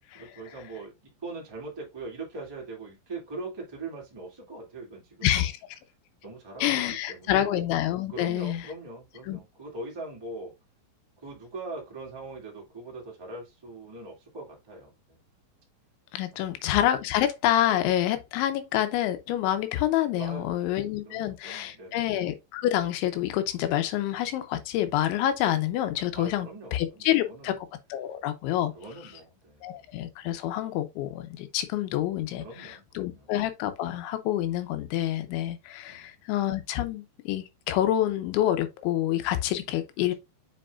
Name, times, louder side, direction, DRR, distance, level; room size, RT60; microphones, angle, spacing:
voice 1, 0.1-0.9 1.2-5.3 6.2-7.5 8.1-10.5 11.2-15.2 16.3-16.5 20.1-20.7 21.0-22.1 26.1-27.5 28.7-29.8 32.4-33.3 35.9-36.2, right 2 dB, 20° right, 0.6 m, -41 dB
voice 2, 5.2-5.8 6.6-8.7 9.2-9.4 16.1-27.6 27.9-28.7 29.6-40.1, left 12 dB, 80° left, 3.1 m, -27 dB
7.7 x 5.3 x 2.5 m
omnidirectional pair, 5.5 m